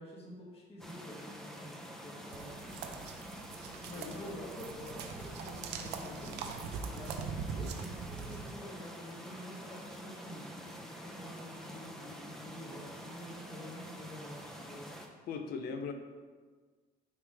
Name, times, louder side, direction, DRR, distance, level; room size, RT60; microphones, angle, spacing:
voice 1, 0.0-2.8 3.8-14.9, left 1 dB, 35° left, -3 dB, 1.6 m, -48 dB
sound 1, 0.8-15.1, equal, 5° left, 0.8 m, -47 dB
sound 2, 2.3-8.5, right 6 dB, 85° right, 0.6 m, -42 dB
voice 2, 3.9-4.3 15.3-15.9, left 5 dB, 65° left, 6 dB, 0.7 m, -39 dB
9.2 x 3.3 x 3.5 m, 1.5 s
cardioid pair, 110°, 17 cm